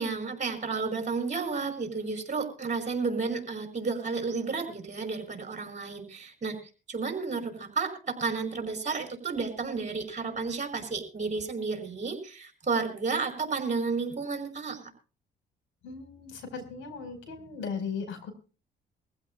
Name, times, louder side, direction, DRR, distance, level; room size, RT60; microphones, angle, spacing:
voice 1, 0.0-6.6 6.9-14.9, right 4 dB, 40° right, 4 dB, 5.0 m, -32 dB
voice 2, 15.8-18.3, left 5 dB, 80° left, 7 dB, 4.7 m, -37 dB
23.0 x 15.5 x 2.3 m, 0.34 s
cardioid pair, 90°, 20 cm